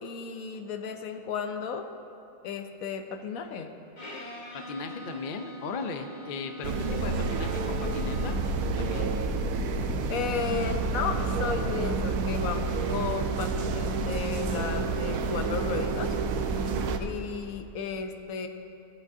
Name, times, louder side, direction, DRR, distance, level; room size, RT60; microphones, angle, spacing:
voice 1, 0.0-1.9 2.4-3.7 10.1-16.2 17.0-18.5, left 6 dB, 75° left, 6 dB, 1.0 m, -34 dB
Bowed string instrument, 4.0-8.6, equal, 35° left, 1.1 m, -43 dB
voice 2, 4.5-8.4 8.8-9.1 16.6-16.9, left 5 dB, 55° left, 6 dB, 0.6 m, -37 dB
sound 1, 6.6-17.0, right 4 dB, 75° right, 1.0 m, -29 dB
17.0 x 8.0 x 2.7 m, 2.8 s
omnidirectional pair, 1.6 m